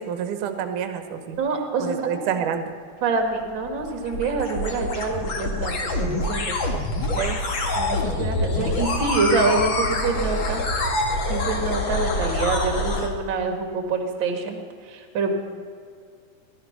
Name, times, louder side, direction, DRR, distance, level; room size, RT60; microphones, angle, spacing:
voice 1, 0.0-1.4 1.8-2.6 7.2-7.4, right 8 dB, 65° right, 8 dB, 2.5 m, -28 dB
voice 2, 1.4-2.5 3.0-7.1 7.8-10.6 11.3-15.4, right 3 dB, 40° right, 4 dB, 2.2 m, -26 dB
sound 1, 3.2-13.1, left 2 dB, 40° left, 2.1 m, -26 dB
18.5 x 13.0 x 5.9 m, 2.1 s
omnidirectional pair, 4.2 m